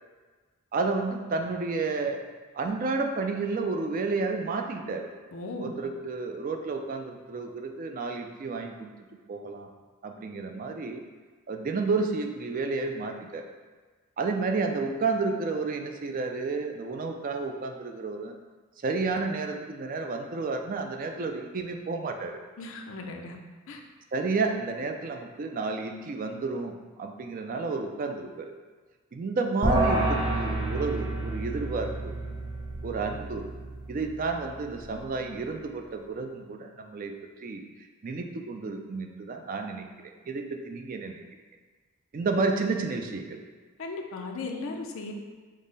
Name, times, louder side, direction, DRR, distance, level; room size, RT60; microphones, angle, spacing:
voice 1, 0.7-2.2 2.5-5.1 5.6-8.9 9.3-9.7 10.0-11.0 11.5-13.4 14.2-18.3 18.8-22.4 24.1-28.5 29.1-32.1 32.8-33.4 33.9-37.1 37.4-37.6 38.0-41.2 42.1-43.4, right 4 dB, 40° right, 4 dB, 0.3 m, -31 dB
voice 2, 5.3-5.7 22.6-23.4 23.7-23.8 43.8-45.1, left 3 dB, 65° left, 2 dB, 0.5 m, -36 dB
sound 1, 29.6-35.1, right 1 dB, 20° right, 1.0 m, -30 dB
5.3 x 2.1 x 3.9 m, 1.4 s
head